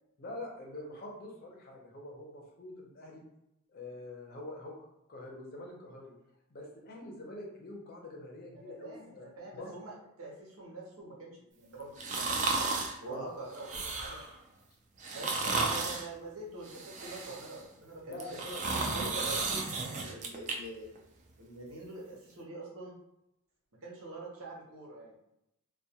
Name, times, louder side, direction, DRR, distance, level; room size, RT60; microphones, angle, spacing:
voice 1, 0.2-3.2 3.7-6.1 6.5-9.7 13.1-13.2 18.1-19.5, left 1 dB, 45° left, -1 dB, 0.6 m, -45 dB
voice 2, 8.5-12.4 13.0-14.2 15.1-18.4 18.9-19.6 19.9-20.8 21.4-22.9 23.8-25.2, right 2 dB, 75° right, -3 dB, 0.8 m, -45 dB
sound 1, 12.0-13.0 13.5-14.3 15.0-16.1 16.7-17.6 18.1-20.6 21.0-21.1, right 3 dB, 35° right, 0.3 m, -33 dB
2.2 x 2.2 x 2.7 m, 0.84 s
head